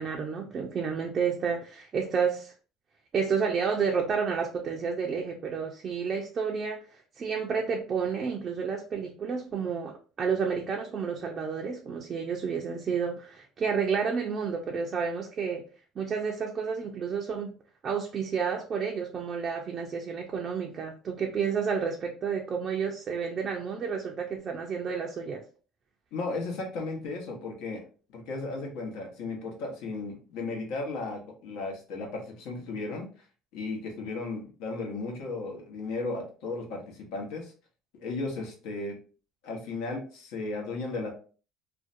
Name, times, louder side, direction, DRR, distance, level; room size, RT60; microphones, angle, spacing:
voice 1, 0.0-2.5 3.1-15.6 16.0-17.5 17.8-25.4, right 6 dB, 40° right, 1 dB, 0.4 m, -30 dB
voice 2, 26.1-27.8 28.1-33.1 33.5-37.5 38.0-39.0 39.4-41.1, left 3 dB, 75° left, 1 dB, 0.9 m, -35 dB
2.5 x 2.1 x 2.5 m, 0.38 s
supercardioid pair, 105°, 0 cm